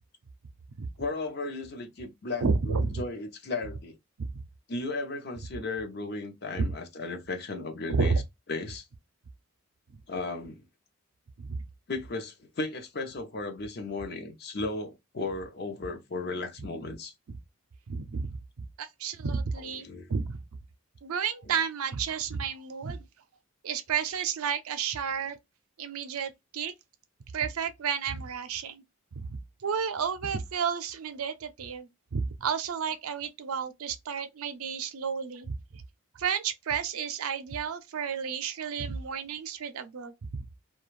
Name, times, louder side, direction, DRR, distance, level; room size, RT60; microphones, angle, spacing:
voice 1, 1.0-4.0 4.7-8.2 8.5-8.9 10.1-10.6 11.9-17.1 19.8-20.1 21.4-21.5, left 3 dB, 45° left, 0.6 m, -35 dB
voice 2, 2.4-2.8 4.2-4.4 7.9-8.2 11.4-11.6 17.9-18.3 18.8-20.4 21.0-23.0 23.6-25.4 25.8-26.7 27.3-28.8 29.2-29.4 29.6-35.5 36.2-40.1, right 6 dB, 85° right, 0.5 m, -31 dB
2.4 x 2.2 x 3.1 m
head